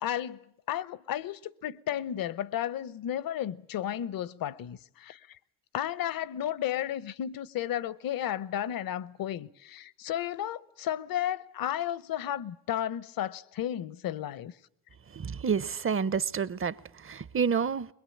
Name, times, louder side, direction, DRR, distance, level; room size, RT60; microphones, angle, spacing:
voice 1, 0.0-5.4 5.7-14.5, left 11 dB, 65° left, 1.0 m, -33 dB
voice 2, 15.1-17.9, right 6 dB, 35° right, 0.9 m, -29 dB
22.0 x 21.5 x 8.6 m
supercardioid pair, 60°, 37 cm